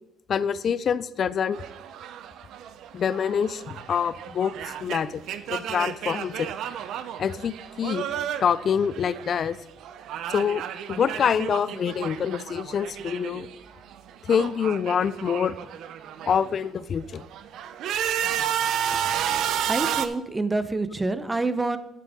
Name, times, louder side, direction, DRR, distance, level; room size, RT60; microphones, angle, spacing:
voice 1, 0.3-1.6 2.9-5.2 5.5-6.5 7.2-8.1 8.4-9.6 10.3-10.6 10.9-13.5 14.3-15.5 16.3-17.2, left 7 dB, 50° left, 18 dB, 0.4 m, -26 dB
sound 1, 1.5-9.6 9.8-13.6 13.8-16.5 17.0-20.1, right 9 dB, 70° right, 0.5 m, -32 dB
voice 2, 19.7-21.8, right 2 dB, 20° right, 12 dB, 0.7 m, -27 dB
8.8 x 8.4 x 3.6 m, 0.88 s
cardioid pair, 85°, 0 cm